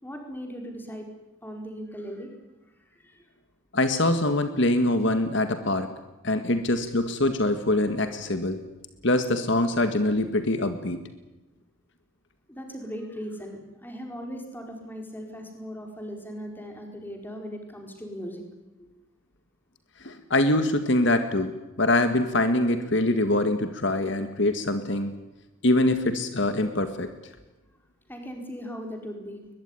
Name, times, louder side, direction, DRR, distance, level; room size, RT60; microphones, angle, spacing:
voice 1, 0.0-1.1 1.4-2.3 2.6-3.2 12.5-18.4 28.1-29.4, equal, 10° left, 3 dB, 4.6 m, -38 dB
voice 2, 3.7-5.9 6.2-8.6 9.0-11.0 20.0-25.1 25.6-27.1, left 1 dB, 60° left, 8 dB, 1.8 m, -24 dB
22.0 x 22.0 x 9.9 m, 1.0 s
head